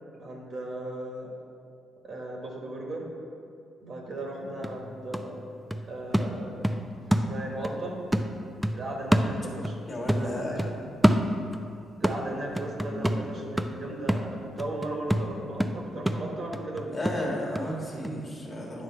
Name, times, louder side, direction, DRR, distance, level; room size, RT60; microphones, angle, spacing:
voice 1, 0.2-1.3 2.0-3.0 3.8-5.4 5.8-6.5 7.1-8.0 8.7-10.6 12.0-17.0, right 2 dB, 50° right, -1 dB, 1.3 m, -36 dB
sound 1, 4.2-4.3 4.6-7.8 8.1-9.8 10.1-11.7 12.0-17.7 18.0-18.1, equal, 5° right, 0.4 m, -28 dB
voice 2, 9.9-10.9 12.8-13.3 16.9-18.8, left 1 dB, 30° left, -2 dB, 1.5 m, -34 dB
9.5 x 3.3 x 5.4 m, 2.5 s
cardioid pair, 90°, 0 cm